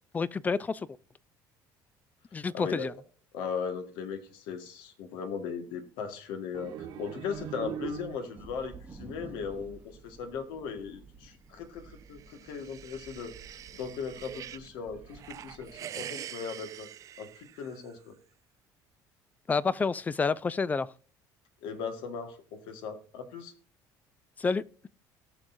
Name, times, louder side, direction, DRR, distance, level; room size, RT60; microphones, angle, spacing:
voice 1, 0.1-0.9 2.3-2.9 19.5-20.9 24.4-24.9, left 4 dB, 20° left, 0.4 m, -29 dB
voice 2, 2.5-2.9 3.3-13.4 13.7-16.9 17.2-18.1 21.6-23.5, left 6 dB, 80° left, 1.6 m, -38 dB
sound 1, 6.5-8.6, right 9 dB, 70° right, 1.4 m, -40 dB
sound 2, 8.4-15.8, right 4 dB, 20° right, 0.9 m, -52 dB
sound 3, 12.0-14.7 15.1-18.0, right 10 dB, 45° right, 0.5 m, -45 dB
18.0 x 6.3 x 2.6 m
cardioid pair, 125°, 8 cm